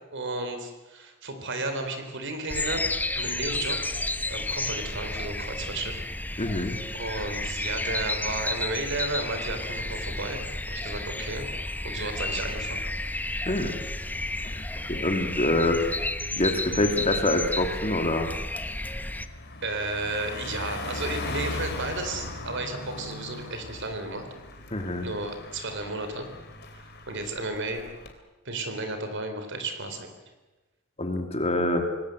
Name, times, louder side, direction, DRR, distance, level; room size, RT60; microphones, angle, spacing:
voice 1, 0.1-2.8 3.1-3.8 4.3-6.0 6.3-6.6 6.9-11.5 11.8-12.8 19.6-24.3 25.0-26.3 26.8-27.8 28.4-30.1, right 2 dB, 55° right, 7 dB, 4.0 m, -33 dB
sound 1, 2.5-19.3, left 2 dB, 10° left, 0.9 m, -32 dB
voice 2, 6.4-6.8 13.5-13.7 14.9-15.8 16.4-18.3 24.7-25.1 31.0-31.8, left 1 dB, 30° left, 5 dB, 2.7 m, -25 dB
Car passing by, 16.5-16.8 17.2-28.1, left 2 dB, 50° left, 3.0 m, -39 dB
26.0 x 19.5 x 7.9 m, 1.2 s
head